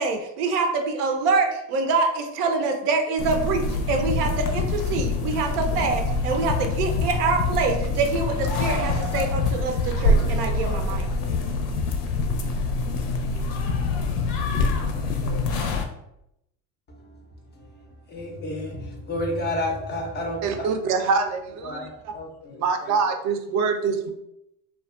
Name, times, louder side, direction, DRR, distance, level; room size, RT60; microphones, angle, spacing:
voice 1, 0.0-11.1, right 4 dB, 90° right, 0.6 m, -25 dB
sound 1, 3.2-15.9, left 3 dB, 80° left, 0.5 m, -25 dB
voice 2, 18.1-20.7 21.6-23.0, left 1 dB, 25° left, 0.3 m, -31 dB
voice 3, 20.4-22.1 22.6-24.1, right 5 dB, 40° right, 0.4 m, -25 dB
2.4 x 2.1 x 2.3 m
hypercardioid pair, 90°, 45 cm